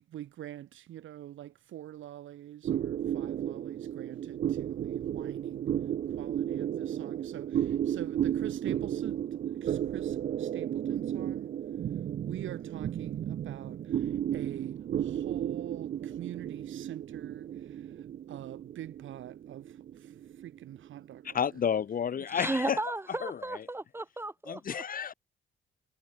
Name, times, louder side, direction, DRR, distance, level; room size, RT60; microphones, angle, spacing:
voice 1, 0.0-5.7 6.1-11.5 12.2-21.4 22.6-22.7, right 12 dB, 75° right, 2.7 m, -45 dB
sound 1, 2.6-21.4, right 10 dB, 45° right, 0.4 m, -34 dB
voice 2, 21.2-22.8 23.2-23.6 24.5-25.1, left 7 dB, 45° left, 0.9 m, -31 dB
voice 3, 22.3-24.6, right 2 dB, 10° right, 1.7 m, -34 dB
cardioid pair, 90°, 20 cm